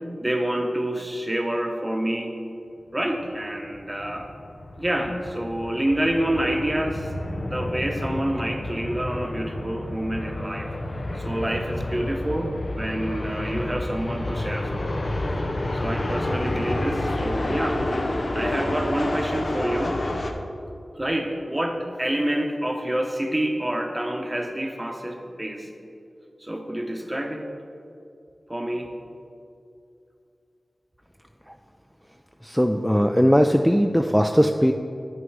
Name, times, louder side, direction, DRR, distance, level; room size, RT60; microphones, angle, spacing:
voice 1, 0.2-2.3 2.9-4.3 4.8-7.1 7.4-10.7 11.1-15.1 15.7-17.8 18.3-20.1 20.9-25.7 26.4-27.5 28.5-28.9, right 1 dB, 20° right, 4 dB, 1.0 m, -28 dB
sound 1, 3.2-20.3, left 1 dB, 55° left, 0.7 m, -29 dB
voice 2, 32.4-34.7, equal, 5° left, 5 dB, 0.4 m, -19 dB
9.0 x 6.2 x 4.7 m, 2.6 s
cardioid pair, 45°, 0 cm